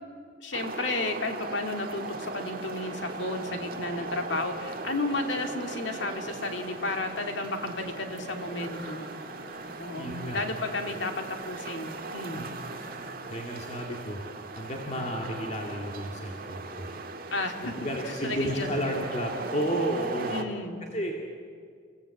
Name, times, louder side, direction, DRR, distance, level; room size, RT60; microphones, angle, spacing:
voice 1, 0.4-9.1 9.8-12.4 17.3-17.7 18.2-18.8 20.3-20.8, left 2 dB, 60° left, 4 dB, 2.3 m, -33 dB
sound 1, 0.5-20.4, right 3 dB, 45° right, 1.7 m, -39 dB
sound 2, 1.4-13.1, equal, 5° right, 6.2 m, -48 dB
voice 2, 9.9-10.5 12.4-12.5 13.3-16.9 17.6-20.4 20.9-21.2, equal, 35° left, 0 dB, 2.1 m, -32 dB
30.0 x 16.5 x 8.6 m, 2.1 s
head